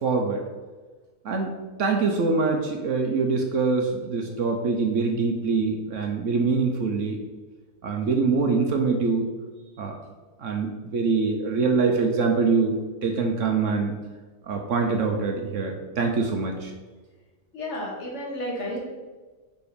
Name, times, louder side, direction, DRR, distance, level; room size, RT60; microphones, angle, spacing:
voice 1, 0.0-0.4 1.2-7.2 7.8-9.3 9.8-10.0 10.4-12.7 13.0-14.0 14.4-16.7, right 4 dB, 60° right, 2 dB, 1.0 m, -24 dB
voice 2, 17.5-18.8, left 1 dB, 50° left, -3 dB, 1.9 m, -32 dB
5.1 x 4.8 x 5.1 m, 1.3 s
omnidirectional pair, 1.6 m